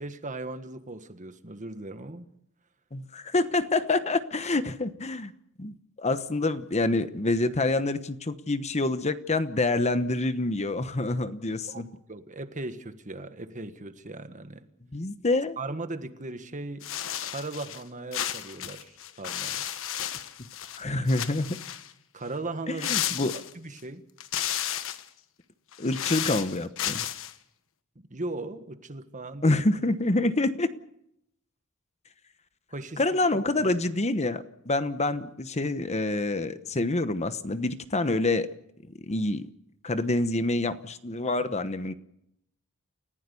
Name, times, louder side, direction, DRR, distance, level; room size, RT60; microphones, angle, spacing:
voice 1, 0.0-2.2 11.7-11.8 12.1-14.6 15.6-16.9 17.2-19.6 22.1-22.9 23.2-24.0 28.1-29.6 32.7-33.0 33.3-33.7, right 2 dB, 35° right, 10 dB, 1.5 m, -38 dB
voice 2, 2.9-5.3 5.6-11.9 14.9-15.6 20.8-21.6 22.7-23.4 25.8-27.0 29.4-30.7 33.0-38.5 39.0-39.5 39.8-41.9, left 2 dB, 30° left, 11 dB, 1.0 m, -27 dB
sound 1, 16.8-17.8 18.1-20.8 21.1-21.9 22.8-23.8 24.2-25.1 25.7-27.3, left 10 dB, 65° left, 1.3 m, -33 dB
29.5 x 15.5 x 7.0 m, 0.76 s
head